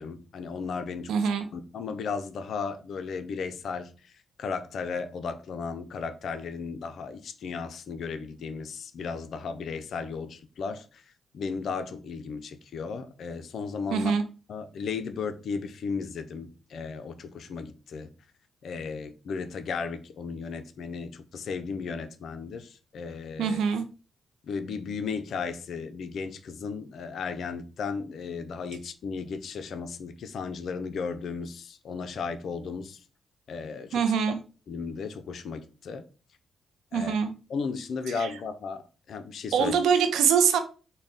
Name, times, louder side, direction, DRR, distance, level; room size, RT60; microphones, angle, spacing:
voice 1, 0.0-1.1 1.5-3.9 4.4-11.0 11.3-14.1 14.5-18.1 18.6-23.6 24.5-33.0 33.5-34.0 34.7-36.0 36.9-37.1 37.5-38.8 39.1-39.7, left 5 dB, 70° left, 0.4 m, -35 dB
voice 2, 1.1-1.5 13.9-14.2 23.4-23.8 33.9-34.4 36.9-37.3 38.1-38.3 39.5-40.6, right 7 dB, 90° right, 0.4 m, -24 dB
3.9 x 2.1 x 3.4 m
cardioid pair, 75°, 0 cm